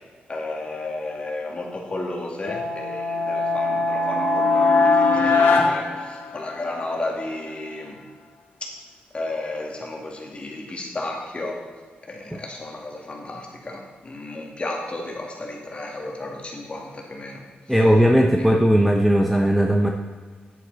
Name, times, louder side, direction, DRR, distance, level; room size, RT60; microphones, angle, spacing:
voice 1, 0.3-8.0 9.1-11.7 12.1-17.4 18.4-18.5, left 2 dB, 30° left, 0 dB, 2.1 m, -33 dB
sound 1, 2.4-6.8, left 3 dB, 75° left, 1.7 m, -21 dB
voice 2, 17.7-19.9, equal, ahead, 2 dB, 0.7 m, -17 dB
9.9 x 8.4 x 4.0 m, 1.5 s
cardioid pair, 100°, 4 cm